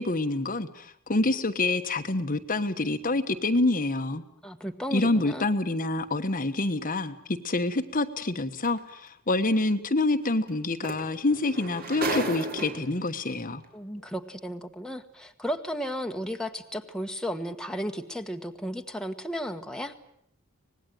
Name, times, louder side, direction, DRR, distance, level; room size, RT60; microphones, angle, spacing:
voice 1, 0.0-4.2 4.9-13.6, left 2 dB, 40° left, 8 dB, 1.2 m, -27 dB
voice 2, 4.4-5.5 13.7-20.0, equal, 5° left, 4 dB, 1.4 m, -34 dB
sound 1, 8.6-8.8 10.5-10.6 10.8-13.1 14.0-14.1, right 2 dB, 45° right, 3.5 m, -33 dB
25.0 x 19.5 x 9.3 m, 0.73 s
head